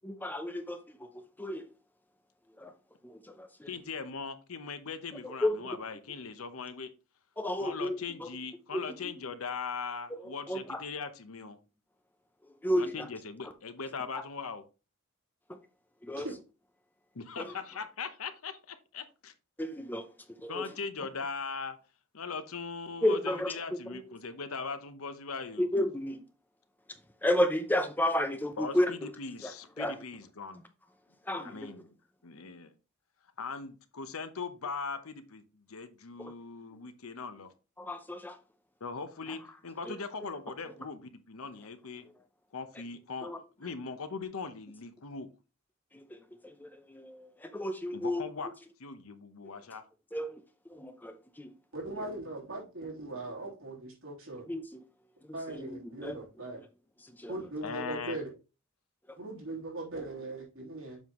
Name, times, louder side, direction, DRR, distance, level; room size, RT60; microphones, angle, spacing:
voice 1, 0.0-1.7 2.6-2.7 3.0-3.7 5.2-5.7 7.4-8.3 8.7-9.1 10.1-10.8 12.4-13.1 13.4-13.5 15.5-15.6 16.0-16.3 17.4-17.5 19.6-20.1 20.4-20.7 23.0-24.0 25.6-26.2 27.2-29.1 29.4-30.0 31.2-31.7 36.2-36.3 36.7-36.8 37.8-38.4 39.3-39.4 39.8-40.0 43.2-43.4 45.9-48.3 49.4-49.5 50.1-51.5 51.9-52.0 54.5-54.8 55.2-56.2 56.6-56.7 57.0-57.3 59.1-59.2, left 1 dB, 10° left, 0.5 m, -33 dB
voice 2, 3.7-6.9 7.6-11.6 12.8-14.6 17.1-19.3 20.5-21.8 22.1-25.7 28.6-30.6 31.4-31.9 32.2-32.7 33.4-37.5 38.8-42.0 42.5-43.3 43.6-45.3 47.9-48.5 48.8-49.8 57.6-58.2, left 5 dB, 90° left, 0.8 m, -40 dB
voice 3, 51.7-54.4 55.3-56.6 57.3-58.3 59.1-61.0, right 2 dB, 70° right, 3.4 m, -39 dB
7.3 x 5.4 x 3.1 m
head